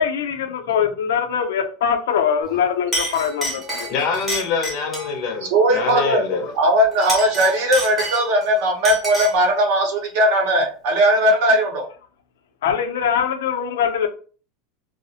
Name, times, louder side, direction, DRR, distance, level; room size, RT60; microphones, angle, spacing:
voice 1, 0.0-4.1 12.6-14.1, left 7 dB, 90° left, 0.4 m, -22 dB
Chink clink, 2.4-2.6 2.9-5.1 6.9-8.5 8.8-9.4, equal, 5° right, 0.7 m, -28 dB
voice 2, 3.9-6.5, left 5 dB, 35° left, 0.5 m, -25 dB
voice 3, 5.5-6.2 6.6-11.9, right 1 dB, 50° right, 0.7 m, -18 dB
2.4 x 2.0 x 2.7 m
supercardioid pair, 180°, 0 cm